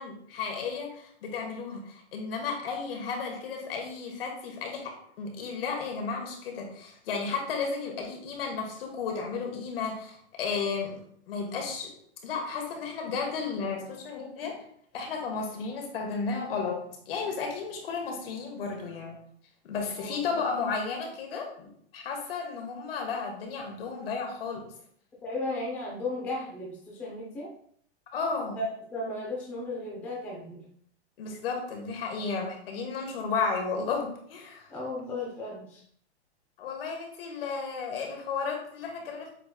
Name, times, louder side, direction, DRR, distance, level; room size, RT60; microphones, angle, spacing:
voice 1, 0.0-11.0 11.3-11.9 12.2-14.6 14.9-19.2 19.6-24.6 28.1-28.6 31.2-34.7 36.6-39.3, left 5 dB, 60° left, 2 dB, 1.3 m, -33 dB
voice 2, 25.2-27.5 28.5-28.6 28.9-30.6 34.7-35.8, left 2 dB, 5° left, -5 dB, 0.5 m, -35 dB
7.7 x 3.1 x 2.2 m, 0.63 s
supercardioid pair, 165°, 32 cm